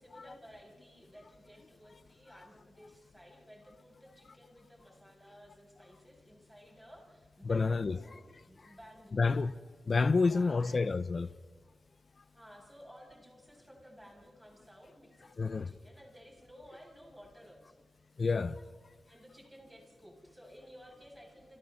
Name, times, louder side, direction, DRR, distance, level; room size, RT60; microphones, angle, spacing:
voice 1, 0.0-9.3 10.1-10.9 12.3-17.9 19.0-21.6, equal, 5° right, 7.5 m, -56 dB
voice 2, 7.4-8.2 8.6-8.7 9.1-9.5 9.9-11.3 15.4-15.7 18.2-18.6, left 4 dB, 50° left, 0.6 m, -29 dB
29.5 x 29.5 x 4.2 m
wide cardioid pair, 85°, 0 cm